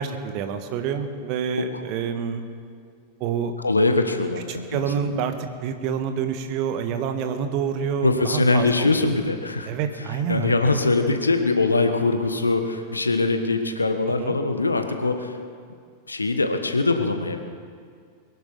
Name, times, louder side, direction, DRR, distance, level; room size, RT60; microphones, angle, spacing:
voice 1, 0.0-2.4 3.2-3.5 4.5-5.3 5.6-9.1 9.7-10.5 14.2-14.4, right 7 dB, 45° right, 7 dB, 1.5 m, -27 dB
voice 2, 3.6-5.1 8.0-9.7 10.3-15.4 16.1-17.4, left 3 dB, 80° left, 7 dB, 1.3 m, -22 dB
23.0 x 11.0 x 5.5 m, 2.2 s
figure-of-eight pair, 90°, 0 cm